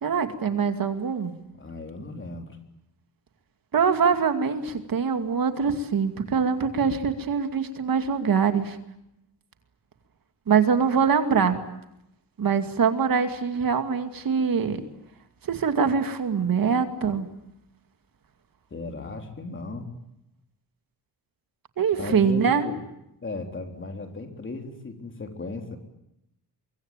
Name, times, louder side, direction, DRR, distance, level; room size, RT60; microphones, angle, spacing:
voice 1, 0.0-1.3 3.7-8.8 10.5-11.6 12.4-14.8 15.4-17.3 21.8-22.7, right 6 dB, 60° right, 8 dB, 2.5 m, -23 dB
voice 2, 1.6-2.6 18.7-19.9 22.0-22.8 23.2-25.8, left 3 dB, 30° left, 5 dB, 3.6 m, -36 dB
24.0 x 24.0 x 9.0 m, 0.83 s
wide cardioid pair, 175°, 40 cm